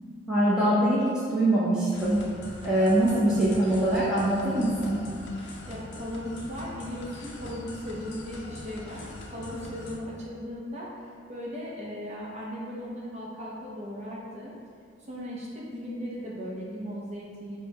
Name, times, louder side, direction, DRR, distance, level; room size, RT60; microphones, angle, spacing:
voice 1, 0.3-2.2 2.6-5.0, right 1 dB, 5° right, -10 dB, 0.6 m, -23 dB
sound 1, 1.9-10.0, left 2 dB, 60° left, 0.5 m, -42 dB
voice 2, 5.7-9.0 9.3-10.9 11.3-14.5 15.1-17.6, equal, 35° right, -6 dB, 0.8 m, -37 dB
4.5 x 2.2 x 4.7 m, 2.2 s
head